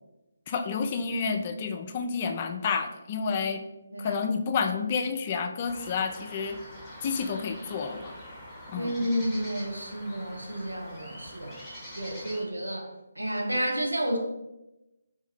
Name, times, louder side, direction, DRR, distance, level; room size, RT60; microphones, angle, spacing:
voice 1, 0.5-3.6 4.0-6.6 7.0-8.1 8.7-9.1, left 5 dB, 30° left, 6 dB, 0.3 m, -30 dB
sound 1, 5.6-12.4, equal, 5° left, 0.9 m, -44 dB
voice 2, 8.7-11.5 11.9-12.9 13.2-14.2, equal, 85° right, 1 dB, 0.8 m, -31 dB
3.4 x 2.7 x 3.5 m, 0.95 s
figure-of-eight pair, 145°, 0 cm